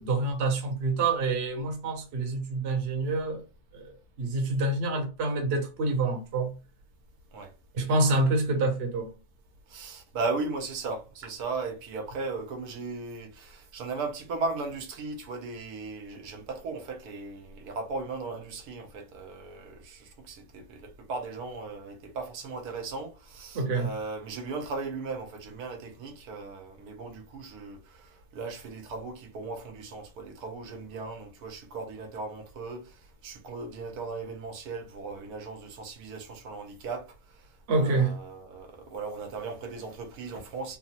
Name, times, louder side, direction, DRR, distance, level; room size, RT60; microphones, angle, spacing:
voice 1, 0.0-3.4 3.7-6.5 7.7-9.1 23.5-23.9 37.7-38.2, right 3 dB, 50° right, 0.9 m, -27 dB
voice 2, 9.7-40.8, right 3 dB, 85° right, 1.3 m, -37 dB
3.4 x 2.0 x 2.7 m
omnidirectional pair, 1.6 m